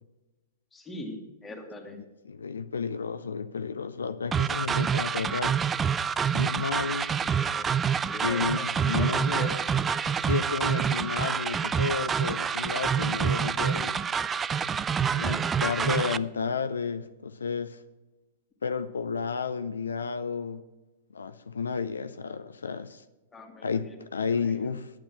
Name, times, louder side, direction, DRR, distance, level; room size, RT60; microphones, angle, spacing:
voice 1, 0.7-2.0 7.3-7.8 8.0-9.7 15.2-15.7 23.3-24.0 24.2-24.5, left 2 dB, 10° left, 1 dB, 2.0 m, -42 dB
voice 2, 2.2-5.6 6.3-7.1 8.2-9.5 10.2-14.0 15.1-17.8 18.6-20.6 21.1-23.0 23.6-25.0, left 5 dB, 80° left, 10 dB, 0.5 m, -32 dB
sound 1, 4.3-16.2, right 7 dB, 20° right, 0.3 m, -27 dB
9.2 x 8.6 x 6.1 m, 1.1 s
hypercardioid pair, 115°, 0 cm